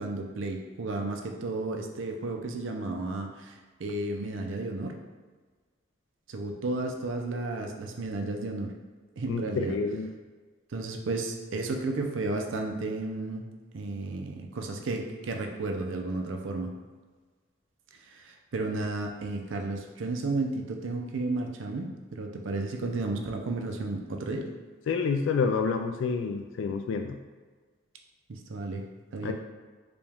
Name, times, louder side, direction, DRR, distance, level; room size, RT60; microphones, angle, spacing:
voice 1, 0.0-3.5 3.8-5.0 6.3-8.7 9.2-9.8 10.7-13.4 13.7-16.8 18.1-24.5 28.3-28.8 29.1-29.3, right 2 dB, 80° right, 3 dB, 0.5 m, -33 dB
voice 2, 9.3-10.1 24.9-27.2 29.2-29.3, left 5 dB, 80° left, 5 dB, 0.3 m, -28 dB
5.0 x 2.3 x 3.4 m, 1.4 s
head